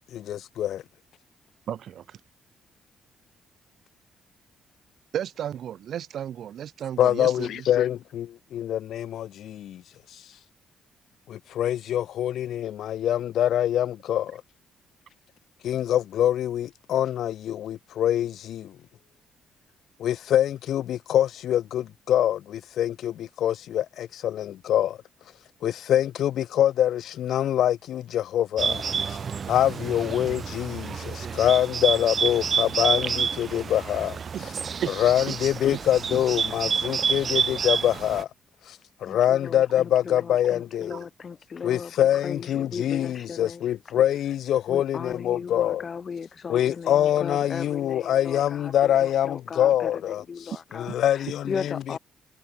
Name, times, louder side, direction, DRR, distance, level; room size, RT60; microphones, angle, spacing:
voice 1, 0.1-0.8 7.0-9.8 11.3-14.4 15.6-18.7 20.0-25.0 25.6-29.2 29.5-34.2 35.0-38.3 38.7-41.0 41.6-45.8 46.5-50.2 50.7-51.5, left 11 dB, 75° left, 0.6 m, -25 dB
voice 2, 1.7-2.2 5.1-7.7 34.3-34.4 34.8-34.9 35.3-35.4 40.9-41.0, right 10 dB, 65° right, 1.4 m, -33 dB
Bird, 28.6-38.2, right 6 dB, 45° right, 1.1 m, -29 dB
voice 3, 39.0-43.7 44.7-52.0, left 6 dB, 45° left, 1.2 m, -37 dB
cardioid pair, 90°, 0 cm